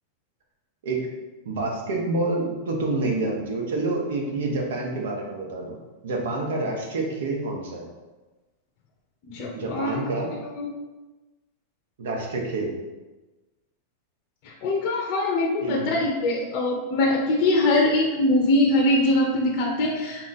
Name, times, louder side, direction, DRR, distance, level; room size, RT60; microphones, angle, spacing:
voice 1, 1.4-5.8 6.0-7.8 9.5-10.3 12.0-12.7 15.6-16.0, right 2 dB, 80° right, 1 dB, 1.0 m, -28 dB
voice 2, 9.3-10.1 10.5-10.7 14.4-20.2, left 2 dB, 40° left, -2 dB, 0.6 m, -22 dB
3.8 x 3.0 x 4.0 m, 1.2 s
supercardioid pair, 170°, 0 cm